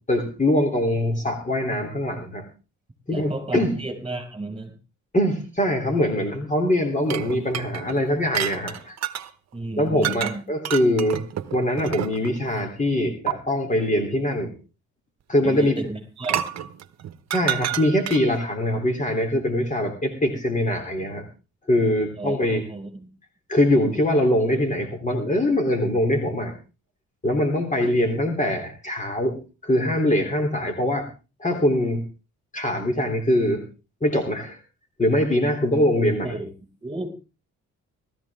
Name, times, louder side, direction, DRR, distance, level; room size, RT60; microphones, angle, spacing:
voice 1, 0.1-2.4 3.1-3.7 5.1-9.0 9.8-11.2 11.5-14.5 15.3-15.8 17.3-21.2 21.7-22.6 23.5-26.5 27.2-29.4 29.6-31.1 31.4-32.0 32.5-33.6 34.0-34.6 35.0-36.3, left 1 dB, 25° left, 4 dB, 3.4 m, -23 dB
voice 2, 3.1-4.7 9.5-10.4 15.4-16.4 22.2-22.4 22.7-23.1 27.8-27.9 36.2-36.5 36.8-37.1, right 2 dB, 20° right, 3 dB, 6.4 m, -33 dB
sound 1, 7.1-9.3 10.0-10.4 10.7-12.4 13.3-13.4 16.2-18.4, right 11 dB, 60° right, 1.1 m, -29 dB
19.0 x 14.0 x 3.6 m, 0.33 s
cardioid pair, 90°, 30 cm